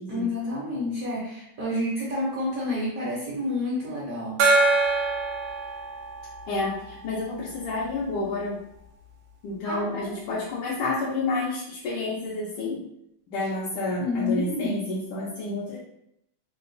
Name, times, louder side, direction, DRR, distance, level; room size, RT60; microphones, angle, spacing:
voice 1, 0.1-4.4 9.6-10.1 14.0-14.8, left 2 dB, 60° right, -6 dB, 0.9 m, -29 dB
Gong, 4.4-7.7, right 3 dB, 90° right, 0.7 m, -25 dB
voice 2, 6.5-8.6 9.4-12.8 13.3-15.8, left 2 dB, 85° left, -6 dB, 1.5 m, -29 dB
3.8 x 2.2 x 2.5 m, 0.76 s
omnidirectional pair, 2.3 m